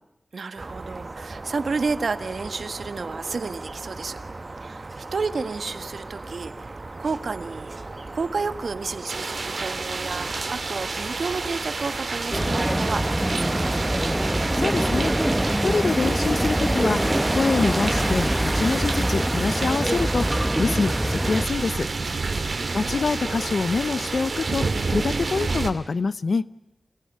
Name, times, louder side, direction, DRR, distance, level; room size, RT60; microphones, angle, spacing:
voice 1, 0.3-4.2 4.6-7.7 8.1-13.7 22.2-22.9, right 4 dB, 90° right, 10 dB, 1.6 m, -31 dB
sound 1, 0.6-20.3, right 2 dB, 45° right, 1.1 m, -38 dB
sound 2, 9.1-25.7, right 3 dB, 70° right, 2.7 m, -30 dB
sound 3, 12.3-21.5, right 1 dB, 15° right, 1.3 m, -24 dB
voice 2, 14.6-15.1 15.6-20.3 20.6-21.9 22.7-24.7 24.9-26.4, left 4 dB, 85° left, 15 dB, 0.8 m, -25 dB
28.5 x 18.5 x 9.5 m, 0.91 s
wide cardioid pair, 75°, 0 cm